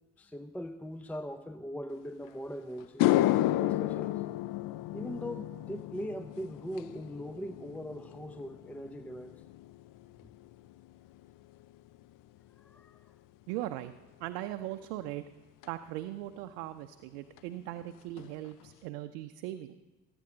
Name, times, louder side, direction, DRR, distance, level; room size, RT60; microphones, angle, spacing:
voice 1, 0.2-3.1 3.6-4.2 4.9-9.4 12.6-13.1, equal, 5° left, 0.6 m, -41 dB
sound 1, 2.3-2.4 2.8-11.3 11.6-12.0 15.6-15.7 17.4-17.5 17.8-17.9 18.2-18.7, left 15 dB, 45° left, 0.5 m, -32 dB
voice 2, 13.5-13.9 14.2-15.2 15.6-19.8, right 14 dB, 65° right, 0.7 m, -39 dB
22.5 x 9.9 x 3.9 m
figure-of-eight pair, 50°, 46 cm